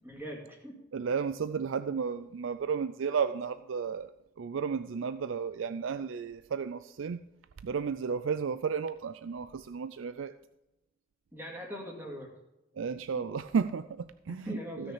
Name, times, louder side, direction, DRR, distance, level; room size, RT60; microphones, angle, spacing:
voice 1, 0.0-0.8 11.3-12.3 13.1-13.3 14.3-14.9, equal, 10° right, 0 dB, 2.2 m, -41 dB
voice 2, 0.9-4.1 4.4-7.2 7.6-10.3 12.8-14.9, right 6 dB, 80° right, 12 dB, 0.4 m, -33 dB
16.0 x 6.3 x 4.9 m, 0.92 s
head